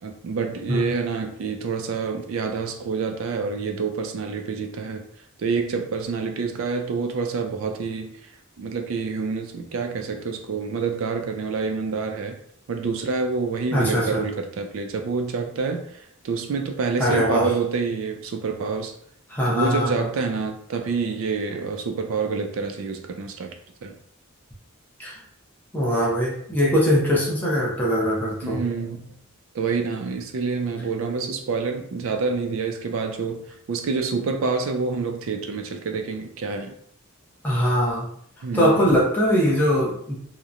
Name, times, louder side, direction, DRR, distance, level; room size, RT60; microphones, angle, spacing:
voice 1, 0.0-5.0 5.4-8.3 8.6-12.4 12.7-19.0 19.5-23.5 23.8-23.9 28.4-29.1 29.5-36.7 38.4-38.8, right 4 dB, 65° right, 5 dB, 0.4 m, -27 dB
voice 2, 13.7-14.2 17.0-17.5 19.3-19.9 25.0-25.2 25.7-28.6 37.4-38.1 38.5-40.2, equal, 10° left, -5 dB, 0.6 m, -21 dB
2.8 x 2.1 x 2.4 m, 0.67 s
head